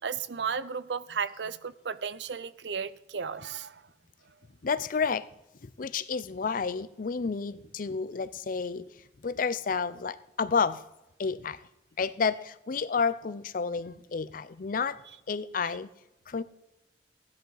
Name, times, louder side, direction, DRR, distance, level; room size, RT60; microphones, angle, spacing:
voice 1, 0.0-3.8, right 6 dB, 75° right, 0.6 m, -34 dB
voice 2, 4.6-5.3 5.6-8.9 9.2-10.8 11.2-11.6 12.0-15.0 15.3-15.9 16.3-16.4, left 5 dB, 50° left, 0.5 m, -30 dB
16.0 x 10.5 x 4.0 m
head